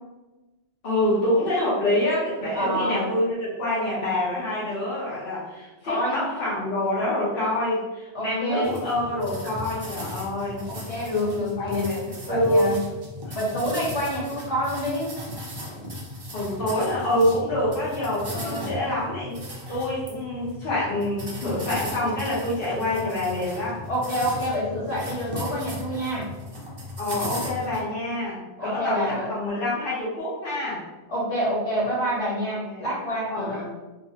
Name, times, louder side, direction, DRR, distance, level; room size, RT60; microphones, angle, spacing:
voice 1, 0.8-10.6 11.6-12.7 13.3-13.4 16.3-19.4 19.7-23.8 27.0-30.8 32.5-32.9 33.3-33.7, left 1 dB, 60° left, -8 dB, 1.1 m, -26 dB
voice 2, 2.5-3.0 5.8-6.2 8.1-8.8 10.7-11.9 12.3-12.8 13.3-15.1 18.3-18.7 23.9-26.3 28.6-29.3 31.1-33.7, equal, 80° left, -7 dB, 1.3 m, -27 dB
sound 1, 8.6-27.8, left 1 dB, 40° right, 0.3 m, -37 dB
2.7 x 2.4 x 2.7 m, 1.1 s
omnidirectional pair, 1.1 m